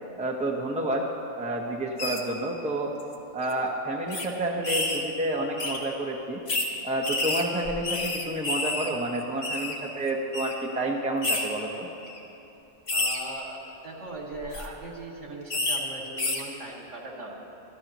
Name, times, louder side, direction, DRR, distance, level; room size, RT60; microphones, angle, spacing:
voice 1, 0.2-1.1 1.4-2.9 3.3-6.4 6.8-11.9, right 1 dB, 5° right, -1 dB, 1.0 m, -29 dB
sound 1, 2.0-2.2 3.0-3.1 3.4-3.5 4.1-4.3 4.6-5.0 5.6-5.8 6.5-6.7 7.0-8.9 9.1-9.7 10.3-10.5 11.2-11.5 12.0-12.2 12.9-13.2 14.3-14.7 15.5-15.8 16.2-16.4, left 2 dB, 55° left, 1.4 m, -29 dB
voice 2, 12.9-17.3, right 2 dB, 70° right, -2 dB, 2.6 m, -39 dB
25.5 x 13.0 x 3.1 m, 2.9 s
omnidirectional pair, 1.3 m